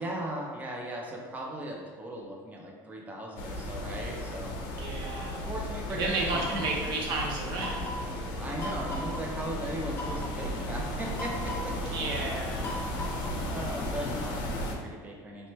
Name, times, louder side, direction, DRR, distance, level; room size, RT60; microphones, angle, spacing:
voice 1, 0.0-4.6 5.5-6.6 8.4-11.9 13.5-15.5, right 1 dB, 20° right, -1 dB, 0.6 m, -37 dB
sound 1, 3.4-14.8, left 1 dB, 75° left, 0.6 m, -35 dB
voice 2, 4.8-5.4 5.9-7.8 11.9-12.7, right 2 dB, 65° right, -1 dB, 0.8 m, -32 dB
sound 2, 6.3-6.9 7.6-8.1 8.6-9.2 9.9-10.4 11.2-11.8 12.6-13.5, left 1 dB, 25° left, 0.7 m, -38 dB
3.3 x 3.0 x 3.1 m, 1.6 s
cardioid pair, 140°, 8 cm